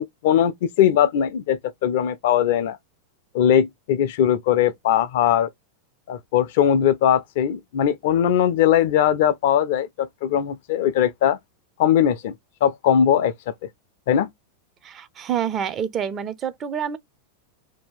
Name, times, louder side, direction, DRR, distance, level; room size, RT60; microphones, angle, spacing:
voice 1, 0.0-2.8 3.3-5.5 6.1-11.4 11.8-12.3 12.6-13.7 14.1-14.3, left 9 dB, 55° left, 0.4 m, -20 dB
voice 2, 14.8-17.0, right 8 dB, 30° right, 0.5 m, -27 dB
2.6 x 2.2 x 3.6 m
figure-of-eight pair, 90°, 0 cm